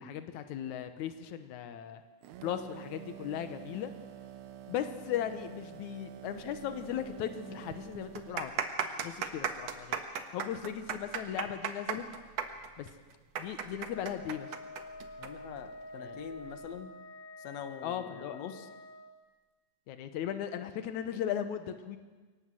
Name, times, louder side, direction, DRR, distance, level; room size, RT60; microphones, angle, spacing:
voice 1, 0.0-2.0 2.4-3.9 4.7-8.6 9.0-10.0 10.3-12.0 12.8-12.9 13.4-14.5 16.0-16.2 17.8-18.4 19.9-22.0, left 10 dB, 90° left, 9 dB, 2.4 m, -37 dB
sound 1, 2.2-8.5, right 12 dB, 80° right, 2.2 m, -48 dB
sound 2, 7.0-7.1 7.3-7.4 8.0-15.3 15.6-15.7 16.4-16.7, right 8 dB, 65° right, 2.4 m, -35 dB
Wind instrument woodwind instrument, 13.8-19.2, left 2 dB, 40° left, 1.3 m, -48 dB
voice 2, 15.2-16.9 17.4-18.7, left 8 dB, 65° left, 9 dB, 2.4 m, -44 dB
23.0 x 18.5 x 7.7 m, 1.4 s
omnidirectional pair, 3.3 m